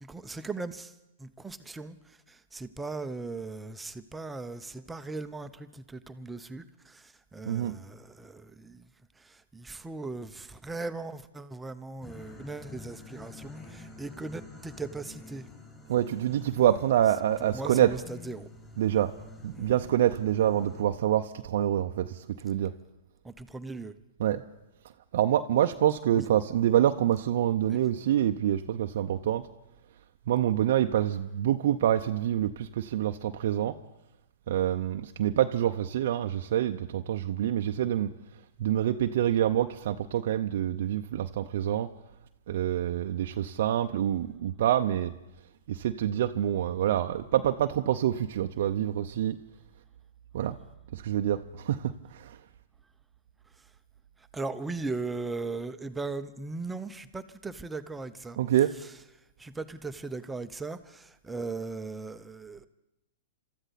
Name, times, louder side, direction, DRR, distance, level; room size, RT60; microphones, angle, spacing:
voice 1, 0.0-0.9 1.2-8.9 9.2-15.5 17.4-18.5 23.2-23.9 26.1-26.3 27.7-27.8 54.3-58.4 59.4-62.7, right 3 dB, 10° right, 9 dB, 0.7 m, -38 dB
sound 1, 12.0-20.8, left 2 dB, 20° left, 4.6 m, -48 dB
voice 2, 15.9-18.0 18.8-19.1 19.4-22.7 24.2-24.4 25.1-29.5 30.3-33.8 34.5-38.1 38.6-41.9 42.5-45.1 45.7-49.4 50.3-50.6 50.9-52.4 58.4-58.7, right 11 dB, 65° right, 5 dB, 0.6 m, -26 dB
26.0 x 13.5 x 4.1 m, 0.91 s
hypercardioid pair, 125°, 0 cm